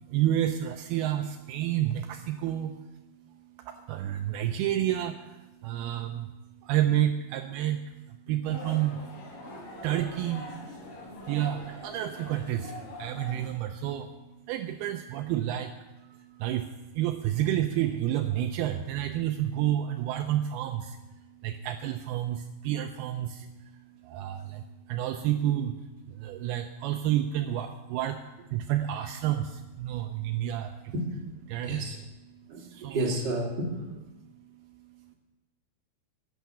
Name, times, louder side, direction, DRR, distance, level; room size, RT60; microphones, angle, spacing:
voice 1, 0.0-30.9 31.5-33.1 34.1-35.2, right 12 dB, 80° right, 6 dB, 2.4 m, -31 dB
sound 1, 8.5-13.5, left 1 dB, 80° left, 5.3 m, -43 dB
voice 2, 31.6-32.0 32.5-32.6 32.9-33.7, right 1 dB, 30° right, -2 dB, 2.3 m, -30 dB
11.0 x 9.0 x 6.9 m, 1.1 s
omnidirectional pair, 4.7 m